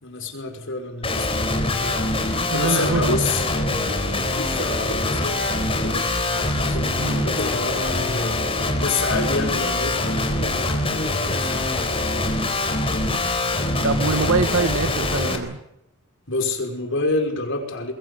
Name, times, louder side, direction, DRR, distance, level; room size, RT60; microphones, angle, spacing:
voice 1, 0.0-2.0 2.5-3.9 4.3-6.1 6.3-8.5 8.8-11.9 16.3-17.9, left 3 dB, 65° left, 4 dB, 5.5 m, -28 dB
Guitar, 1.0-15.4, left 2 dB, 30° left, 3.9 m, -24 dB
voice 2, 2.5-3.2 7.0-7.2 13.1-13.2 13.8-15.6, right 3 dB, 80° right, 9 dB, 1.8 m, -24 dB
23.0 x 22.5 x 8.2 m, 0.81 s
head